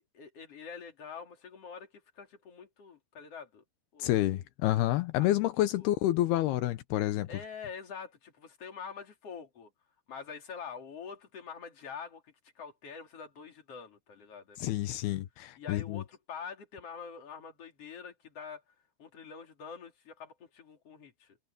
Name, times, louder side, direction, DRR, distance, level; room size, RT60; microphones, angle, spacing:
voice 1, 0.0-3.6 3.9-4.1 5.8-5.9 7.3-9.7 10.1-15.0 15.6-21.4, left 6 dB, 40° left, 4.0 m, -46 dB
voice 2, 4.0-7.3 14.6-16.0, left 15 dB, 80° left, 2.9 m, -29 dB
omnidirectional pair, 4.6 m